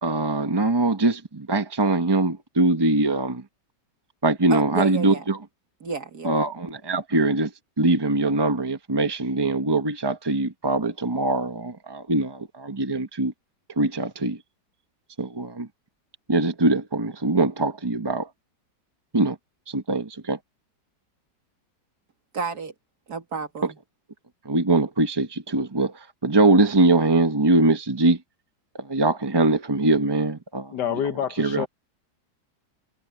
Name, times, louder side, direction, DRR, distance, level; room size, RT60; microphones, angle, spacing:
voice 1, 0.0-3.4 4.2-5.4 6.2-7.5 7.8-13.3 13.8-14.4 15.2-15.7 16.3-18.3 19.1-19.4 19.7-20.4 23.6-23.7 24.4-28.2 28.8-31.0 31.4-31.7, right 2 dB, 20° right, 0.6 m, -22 dB
voice 2, 4.5-5.2 5.8-6.3 22.3-22.7 23.1-23.8, right 4 dB, 60° right, 2.7 m, -31 dB
voice 3, 30.7-31.7, left 9 dB, 70° left, 1.6 m, -27 dB
omnidirectional pair, 1.9 m